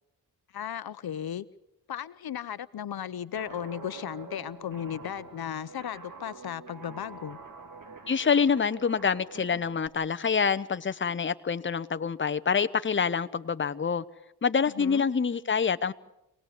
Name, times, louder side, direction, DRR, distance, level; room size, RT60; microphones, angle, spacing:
voice 1, 0.5-1.5 1.9-7.4 14.8-15.0, left 9 dB, 70° left, 0.8 m, -35 dB
Guitar, 3.3-9.9, right 4 dB, 55° right, 3.0 m, -46 dB
voice 2, 8.1-14.0 14.4-15.9, left 6 dB, 30° left, 0.8 m, -26 dB
26.0 x 18.5 x 8.2 m
cardioid pair, 80°, 38 cm